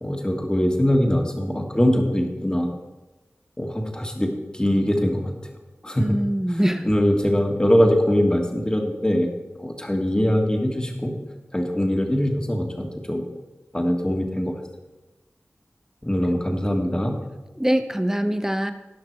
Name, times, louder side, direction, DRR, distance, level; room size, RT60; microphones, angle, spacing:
voice 1, 0.0-2.7 3.6-5.3 5.8-6.1 6.5-9.3 9.6-11.1 11.5-13.2 13.7-14.5 16.0-17.1, equal, 15° left, 3 dB, 1.6 m, -22 dB
voice 2, 5.9-6.9 17.6-18.7, equal, 10° right, 8 dB, 0.8 m, -23 dB
17.5 x 6.0 x 4.6 m, 1.1 s
wide cardioid pair, 60°, 5 cm